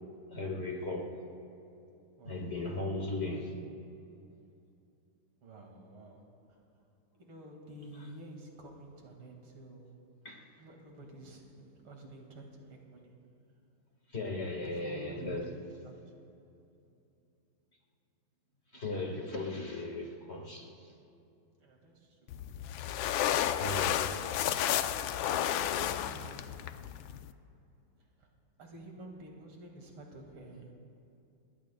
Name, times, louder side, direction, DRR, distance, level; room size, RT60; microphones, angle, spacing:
voice 1, 0.3-1.1 2.3-3.5 10.2-10.4 14.1-15.5 18.7-20.9 23.6-24.1, left 2 dB, 35° left, 0 dB, 1.7 m, -37 dB
voice 2, 2.2-2.5 5.4-6.6 7.2-10.0 10.6-13.1 14.6-15.4 15.8-16.2 21.6-22.3 23.7-26.6 28.2-28.3 28.6-30.8, right 1 dB, 90° right, 1 dB, 2.9 m, -50 dB
sound 1, 22.3-27.3, left 11 dB, 80° left, 1.3 m, -32 dB
28.0 x 20.5 x 2.2 m, 2.7 s
omnidirectional pair, 2.2 m